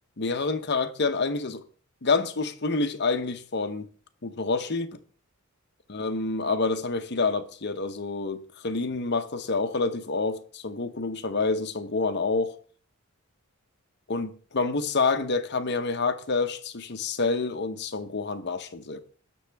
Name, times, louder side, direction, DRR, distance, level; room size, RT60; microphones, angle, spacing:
voice 1, 0.2-1.6 2.0-3.9 4.2-5.0 5.9-12.5 14.1-19.1, left 4 dB, 50° left, 0.9 m, -28 dB
18.5 x 6.2 x 3.4 m
head